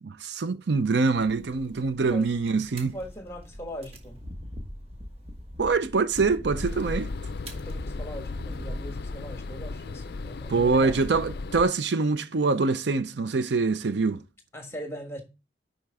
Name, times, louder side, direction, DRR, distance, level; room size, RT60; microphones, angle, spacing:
voice 1, 0.0-3.0 5.6-7.1 10.5-14.2, right 4 dB, 65° right, 0.5 m, -24 dB
sound 1, 1.1-9.0, equal, 30° right, 1.2 m, -42 dB
voice 2, 2.9-4.2 7.5-11.0 14.5-15.2, equal, 15° left, 1.3 m, -40 dB
sound 2, 6.5-11.7, left 3 dB, 55° left, 0.4 m, -36 dB
10.5 x 4.4 x 3.5 m
head